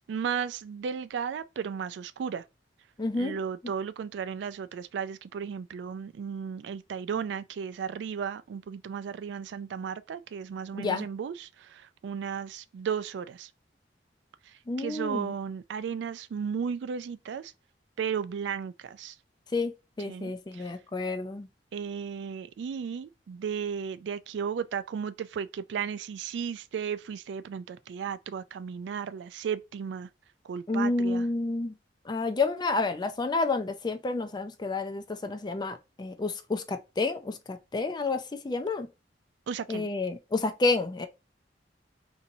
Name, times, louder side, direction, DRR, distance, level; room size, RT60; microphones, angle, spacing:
voice 1, 0.0-2.4 3.2-13.5 14.5-17.5 18.0-19.2 20.1-20.7 21.7-30.1 30.4-31.3 39.5-39.9, right 7 dB, 80° right, 0.3 m, -35 dB
voice 2, 3.0-3.4 10.7-11.1 14.7-15.3 19.5-19.7 20.0-21.5 30.7-31.7 32.0-38.9 39.7-41.1, left 3 dB, 25° left, 0.4 m, -30 dB
4.1 x 2.7 x 2.6 m
head